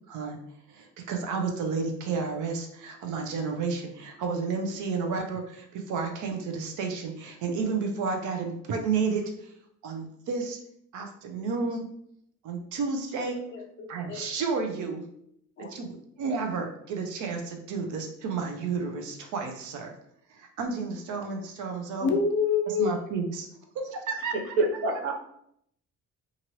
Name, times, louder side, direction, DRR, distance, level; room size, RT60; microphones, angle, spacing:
voice 1, 0.1-0.4 0.7-9.5 9.8-10.6 10.9-11.8 12.4-13.4 13.9-15.0 15.7-19.9 20.3-22.1 22.7-23.5 23.7-24.3, right 4 dB, 90° right, 3 dB, 0.6 m, -31 dB
voice 2, 13.3-14.2 15.6-15.7 22.0-22.9, left 5 dB, 40° left, 4 dB, 0.4 m, -27 dB
voice 3, 24.3-25.1, right 2 dB, 50° right, 0 dB, 0.7 m, -26 dB
2.9 x 2.5 x 2.9 m, 0.72 s
cardioid pair, 175°, 29 cm